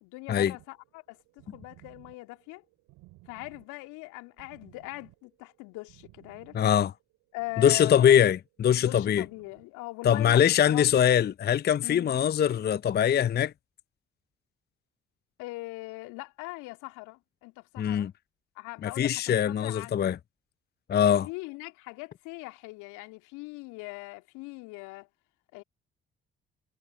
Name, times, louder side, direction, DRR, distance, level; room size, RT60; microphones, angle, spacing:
voice 1, 0.0-2.6 3.3-6.6 7.3-8.3 8.8-10.9 11.8-12.2 15.4-18.1 18.5-20.1 21.0-25.1 25.5-25.6, left 23 dB, 70° left, 2.6 m, -41 dB
sound 1, 0.6-11.3, right 21 dB, 70° right, 5.1 m, -59 dB
voice 2, 6.5-6.9 7.6-9.2 10.0-13.5 17.8-18.1 18.8-20.2 20.9-21.3, left 9 dB, 30° left, 0.5 m, -22 dB
hypercardioid pair, 45°, 31 cm